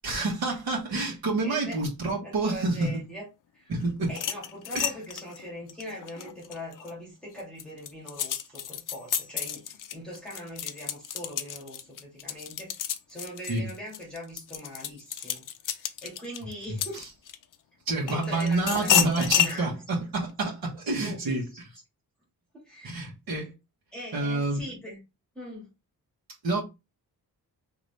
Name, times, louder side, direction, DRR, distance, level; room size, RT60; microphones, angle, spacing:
voice 1, 0.0-2.9 3.7-4.1 4.7-4.9 13.5-13.7 16.9-17.0 17.9-21.4 22.8-23.5 24.1-24.6 26.4-26.6, right 2 dB, 70° right, 1.4 m, -28 dB
voice 2, 1.4-1.8 2.2-3.3 3.5-3.7 4.1-9.7 9.9-12.7 13.1-17.0 18.0-19.8 20.8-21.6 22.5-23.0 23.9-25.0 25.3-25.7, equal, ahead, 2.0 m, -41 dB
sound 1, 4.1-6.9 7.4-17.5 18.1-19.6, left 10 dB, 60° left, 0.5 m, -30 dB
4.1 x 3.0 x 3.2 m
wide cardioid pair, 165°, 38 cm